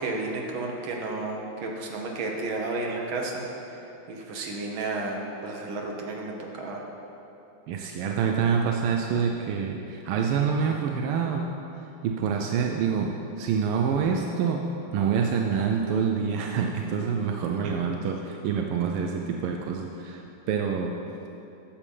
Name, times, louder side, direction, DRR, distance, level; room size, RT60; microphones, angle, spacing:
voice 1, 0.0-3.4 4.1-6.8 17.6-17.7, right 2 dB, 70° right, 0 dB, 1.9 m, -32 dB
voice 2, 7.7-11.5 12.0-14.6 14.9-20.9, right 6 dB, 85° right, 2 dB, 1.5 m, -26 dB
9.8 x 7.2 x 5.4 m, 2.9 s
omnidirectional pair, 2.4 m